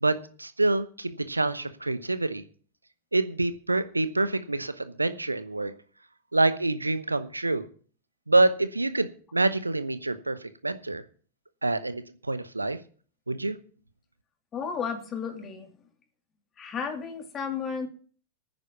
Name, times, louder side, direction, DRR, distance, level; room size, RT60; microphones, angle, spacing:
voice 1, 0.0-2.4 3.1-5.7 6.3-7.7 8.3-11.0 11.6-12.8 13.3-13.6, right 2 dB, 80° right, 13 dB, 0.9 m, -26 dB
voice 2, 14.5-15.7 16.6-17.9, left 6 dB, 25° left, 6 dB, 2.9 m, -33 dB
10.5 x 9.6 x 7.0 m, 0.42 s
figure-of-eight pair, 90°, 0 cm